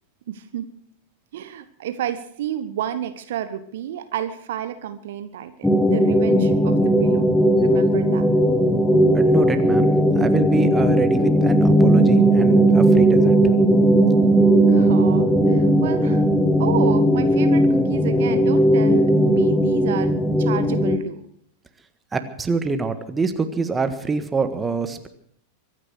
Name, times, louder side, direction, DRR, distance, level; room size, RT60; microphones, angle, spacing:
voice 1, 0.3-0.7 1.3-7.2 7.5-8.3 14.7-16.2 16.6-21.3, right 10 dB, 55° right, 11 dB, 1.1 m, -31 dB
sound 1, 5.6-21.0, right 1 dB, 5° left, 1.3 m, -17 dB
voice 2, 9.1-13.5 22.1-25.1, right 4 dB, 15° right, 9 dB, 1.5 m, -25 dB
23.5 x 9.7 x 6.2 m, 0.65 s
figure-of-eight pair, 90°, 0 cm